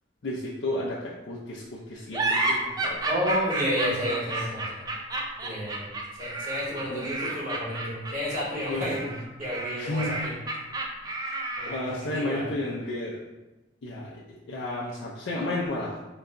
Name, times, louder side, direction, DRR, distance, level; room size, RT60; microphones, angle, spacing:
voice 1, 0.2-3.0 3.8-4.0 6.9-7.1 8.7-8.9 9.8-10.1 11.7-13.2 13.8-16.0, left 2 dB, 80° left, -6 dB, 0.5 m, -32 dB
sound 1, 2.1-12.0, right 2 dB, 20° right, 0.4 m, -31 dB
voice 2, 3.1-4.9 5.4-5.9 6.2-9.1 9.4-10.3 11.6-12.5, equal, 45° right, -6 dB, 1.3 m, -31 dB
3.9 x 2.2 x 3.7 m, 1.1 s
head